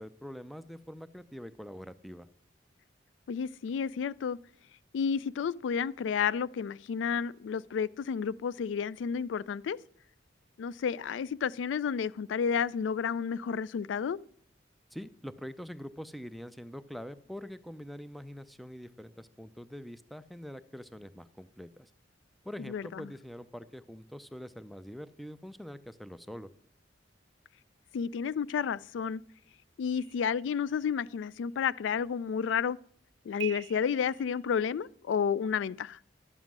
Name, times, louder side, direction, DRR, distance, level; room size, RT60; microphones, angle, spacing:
voice 1, 0.0-2.3 14.9-21.9 22.4-26.5, equal, ahead, 0.5 m, -44 dB
voice 2, 3.3-4.4 4.9-9.8 10.6-14.2 22.6-23.1 27.9-29.2 29.8-32.8 33.2-36.0, left 7 dB, 80° left, 0.3 m, -31 dB
sound 1, 29.8-31.1 33.4-34.9, right 11 dB, 90° right, 0.4 m, -46 dB
11.0 x 7.4 x 6.1 m
head